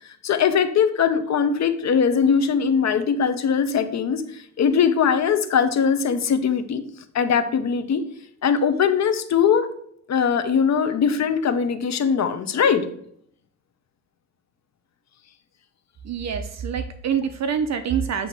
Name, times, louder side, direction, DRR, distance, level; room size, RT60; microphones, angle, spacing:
voice 1, 0.0-6.8 7.1-8.0 8.4-9.7 10.1-12.9, left 7 dB, 55° left, 10 dB, 0.8 m, -21 dB
voice 2, 16.0-18.3, right 7 dB, 55° right, 9 dB, 0.6 m, -26 dB
8.4 x 2.8 x 5.9 m, 0.67 s
cardioid pair, 130°, 33 cm